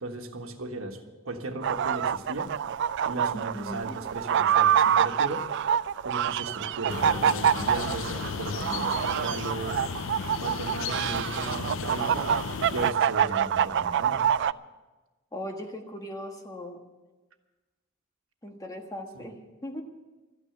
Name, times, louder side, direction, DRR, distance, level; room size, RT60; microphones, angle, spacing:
voice 1, 0.0-1.0 1.2-2.5 3.0-5.5 6.0-9.8 10.4-12.3 12.7-14.3 19.1-19.3, right 2 dB, 80° right, 5 dB, 1.4 m, -36 dB
sound 1, 1.6-14.5, right 8 dB, 60° right, 0.3 m, -26 dB
voice 2, 3.5-4.0 15.3-16.8 18.4-19.8, left 1 dB, 15° left, 3 dB, 1.4 m, -38 dB
sound 2, 6.9-12.9, left 6 dB, 65° left, 0.5 m, -35 dB
13.5 x 9.9 x 7.9 m, 1.2 s
head